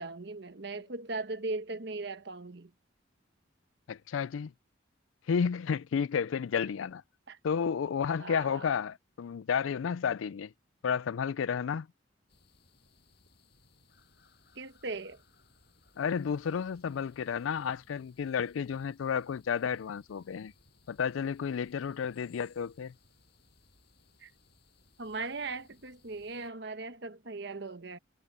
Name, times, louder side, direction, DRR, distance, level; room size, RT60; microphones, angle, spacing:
voice 1, 0.0-2.7 7.3-7.4 8.2-8.7 14.5-15.2 24.2-24.3 25.0-28.0, right 3 dB, 60° right, 1.2 m, -38 dB
voice 2, 3.9-4.5 5.3-7.0 7.4-10.5 10.8-11.9 16.0-20.5 20.9-22.9, left 7 dB, 80° left, 0.4 m, -31 dB
sound 1, 12.3-26.5, left 3 dB, 55° left, 6.9 m, -64 dB
head